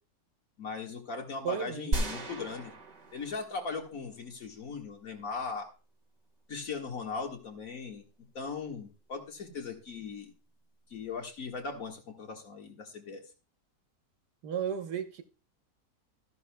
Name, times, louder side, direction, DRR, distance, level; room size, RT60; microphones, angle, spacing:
voice 1, 0.6-2.7 3.1-5.7 6.5-8.1 8.3-10.3 10.9-13.2, left 4 dB, 60° left, 2.1 m, -39 dB
voice 2, 1.4-1.9 14.4-15.2, right 8 dB, 85° right, 1.7 m, -34 dB
sound 1, 1.9-3.9 4.2-4.3, right 2 dB, 55° right, 2.2 m, -34 dB
13.5 x 11.0 x 2.3 m
omnidirectional pair, 1.7 m